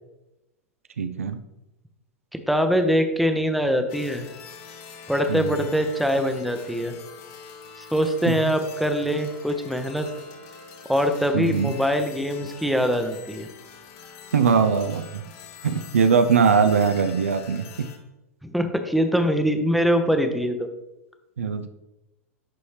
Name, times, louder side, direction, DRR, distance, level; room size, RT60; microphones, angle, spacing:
voice 1, 1.0-1.4 5.3-5.6 8.3-8.5 11.3-11.7 14.3-15.0 15.6-17.9 21.4-21.7, right 6 dB, 70° right, 9 dB, 0.5 m, -21 dB
voice 2, 2.3-4.3 5.1-6.9 7.8-10.1 10.9-13.5 18.5-20.7, equal, ahead, 6 dB, 0.7 m, -23 dB
sound 1, 3.9-18.0, left 5 dB, 45° left, 1.0 m, -44 dB
10.5 x 4.1 x 3.3 m, 0.96 s
figure-of-eight pair, 90°, 8 cm